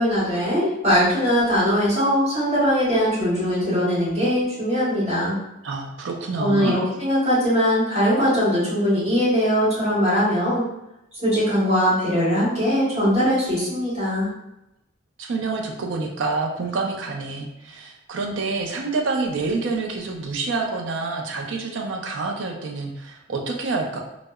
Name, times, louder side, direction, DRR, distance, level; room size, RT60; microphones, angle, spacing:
voice 1, 0.0-5.4 6.4-10.6 11.2-14.3, equal, 35° right, -11 dB, 1.5 m, -21 dB
voice 2, 5.6-6.8 15.2-24.0, right 3 dB, 70° right, 1 dB, 0.4 m, -27 dB
2.7 x 2.0 x 2.3 m, 0.88 s
head